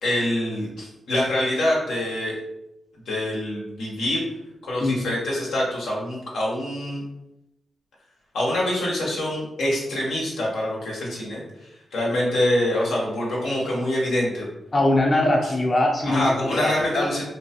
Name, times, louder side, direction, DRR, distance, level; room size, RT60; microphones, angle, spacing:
voice 1, 0.0-2.4 3.1-4.2 4.6-7.0 8.3-14.5 15.4-15.5 16.0-17.2, left 1 dB, 90° left, -4 dB, 0.9 m, -25 dB
voice 2, 14.7-17.2, left 1 dB, 40° left, -1 dB, 0.6 m, -22 dB
3.0 x 2.2 x 2.8 m, 0.90 s
cardioid pair, 55°, 0 cm